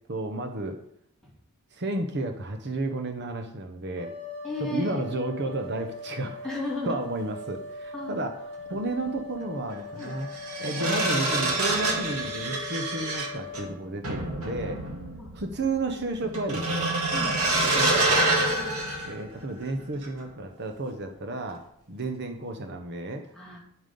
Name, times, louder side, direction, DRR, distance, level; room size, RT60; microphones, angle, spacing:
voice 1, 0.1-0.8 1.7-4.1 4.6-6.4 6.9-10.3 10.6-14.8 15.3-16.9 17.7-18.4 19.0-21.6 21.9-23.2, right 2 dB, 50° right, 5 dB, 1.0 m, -32 dB
sound 1, 4.0-13.7, left 4 dB, 25° right, 4.0 m, -40 dB
voice 2, 4.4-5.3 6.4-7.0 7.9-8.2 10.0-10.1 14.4-15.3 17.1-17.3 18.6-18.8 23.3-23.6, left 2 dB, ahead, -5 dB, 3.0 m, -36 dB
sound 2, 8.6-8.8 10.0-19.7 20.0-20.3, right 2 dB, 85° right, 2.2 m, -27 dB
10.0 x 7.6 x 5.4 m, 0.72 s
head